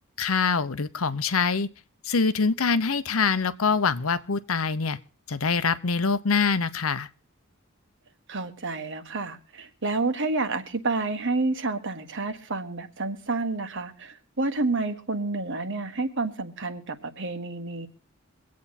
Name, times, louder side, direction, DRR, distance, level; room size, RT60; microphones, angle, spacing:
voice 1, 0.2-1.7 2.0-5.0 5.3-7.1, left 5 dB, 70° left, 0.8 m, -24 dB
voice 2, 8.3-17.9, right 3 dB, 60° right, 1.6 m, -29 dB
23.5 x 8.5 x 4.2 m
head